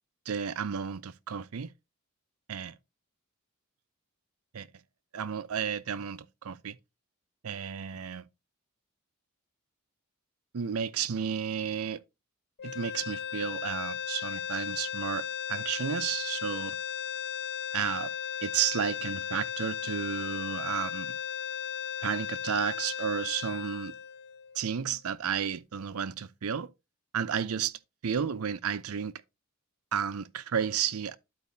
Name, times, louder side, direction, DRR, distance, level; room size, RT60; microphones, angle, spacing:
voice 1, 0.3-1.7 2.5-2.8 4.5-4.7 5.1-6.8 7.4-8.3 10.5-12.0 12.6-16.8 17.7-18.1 18.4-21.2 22.0-23.9 24.6-26.7 27.1-29.2 29.9-31.2, right 7 dB, 85° right, 0.6 m, -32 dB
sound 1, 12.6-24.8, left 8 dB, 50° left, 0.5 m, -36 dB
12.0 x 4.6 x 2.6 m
head